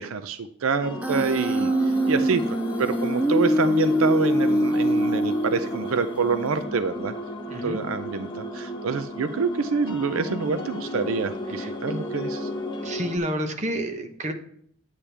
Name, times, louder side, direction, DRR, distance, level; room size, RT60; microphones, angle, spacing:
voice 1, 0.0-2.4 2.8-7.1 7.6-12.5, right 5 dB, 75° right, 11 dB, 0.5 m, -27 dB
sound 1, 0.8-13.2, left 1 dB, 20° left, 0.9 m, -33 dB
Human voice, 1.0-6.0, equal, 5° right, 0.3 m, -23 dB
voice 2, 7.5-7.8 11.6-11.7 12.8-14.3, right 1 dB, 35° right, 5 dB, 0.9 m, -29 dB
8.8 x 8.4 x 3.4 m, 0.65 s
head